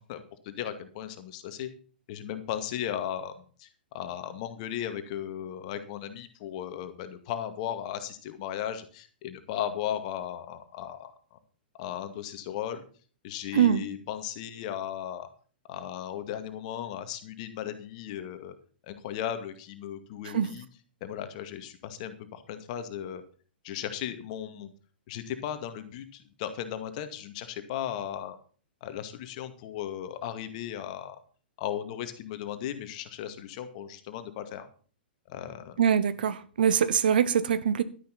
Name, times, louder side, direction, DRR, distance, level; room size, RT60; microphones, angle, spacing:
voice 1, 0.0-1.7 2.1-3.3 3.6-3.7 3.9-11.4 11.8-12.8 13.2-15.3 15.7-18.5 18.8-20.7 21.0-23.2 23.6-24.7 25.1-28.4 28.8-31.2 31.6-34.7 35.3-35.8, left 10 dB, 45° left, 2.1 m, -36 dB
voice 2, 13.5-13.8 20.3-20.5 35.8-37.8, right 8 dB, 60° right, 1.1 m, -23 dB
12.0 x 10.5 x 4.2 m
figure-of-eight pair, 110°, 6 cm